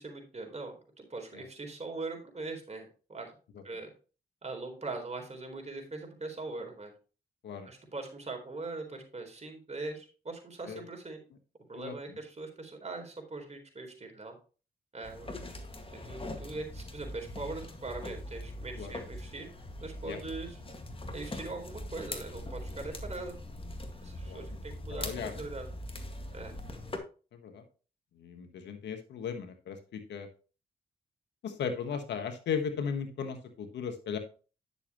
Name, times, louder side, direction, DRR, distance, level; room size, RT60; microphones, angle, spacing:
voice 1, 0.0-3.3 3.6-3.9 4.4-6.9 7.6-11.2 11.7-14.4 14.9-15.3 15.9-19.5 19.8-20.6 21.1-23.3 24.0-25.7 26.3-26.8, right 3 dB, 40° right, 3 dB, 4.0 m, -41 dB
voice 2, 11.7-12.2 15.4-15.6 16.3-16.4 18.8-18.9 20.0-20.2 24.3-24.6 24.9-25.3 27.3-27.6 28.1-30.3 31.4-34.2, left 6 dB, 85° left, 7 dB, 1.4 m, -37 dB
sound 1, 15.0-27.0, left 1 dB, 30° left, 2.0 m, -42 dB
10.0 x 7.1 x 3.0 m, 0.35 s
supercardioid pair, 50°, 18 cm